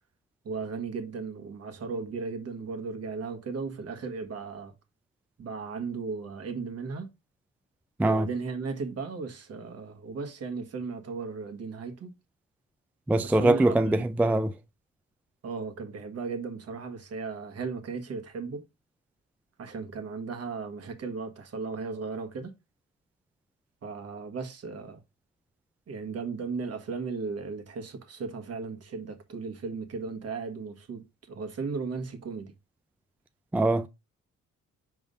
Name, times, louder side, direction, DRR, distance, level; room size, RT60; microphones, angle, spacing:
voice 1, 0.4-4.7 5.4-7.1 8.0-12.1 13.2-14.1 15.4-18.6 19.6-22.5 23.8-25.0 25.9-32.5, right 4 dB, 55° right, 1.6 m, -36 dB
voice 2, 13.1-14.6 33.5-33.9, right 2 dB, 5° right, 0.3 m, -23 dB
5.0 x 3.5 x 5.2 m
cardioid pair, 90°, 30 cm